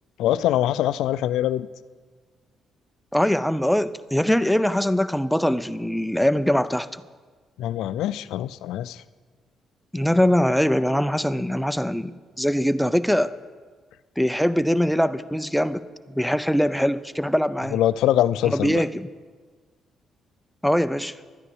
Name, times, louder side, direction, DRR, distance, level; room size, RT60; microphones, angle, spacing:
voice 1, 0.2-1.7 7.6-9.0 17.7-18.8, left 12 dB, 85° left, 15 dB, 0.3 m, -23 dB
voice 2, 3.1-7.0 9.9-13.3 14.2-15.8 16.1-17.8 18.4-19.1 20.6-21.1, equal, ahead, 13 dB, 0.5 m, -22 dB
12.0 x 9.6 x 7.1 m, 1.5 s
cardioid pair, 90°, 0 cm